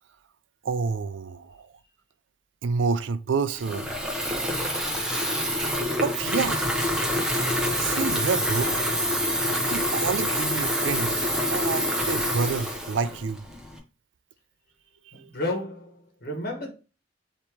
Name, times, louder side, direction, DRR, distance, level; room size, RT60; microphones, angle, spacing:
voice 1, 0.6-1.7 2.6-3.9 6.0-6.6 7.8-8.7 9.7-11.2 11.5-13.5 15.1-15.3, right 5 dB, 75° right, 0.4 m, -28 dB
Water tap faucet / Fill (with liquid), 3.5-13.8, equal, 5° right, 0.8 m, -26 dB
voice 2, 15.1-16.7, left 1 dB, 55° left, 1.4 m, -32 dB
4.5 x 2.9 x 3.4 m
head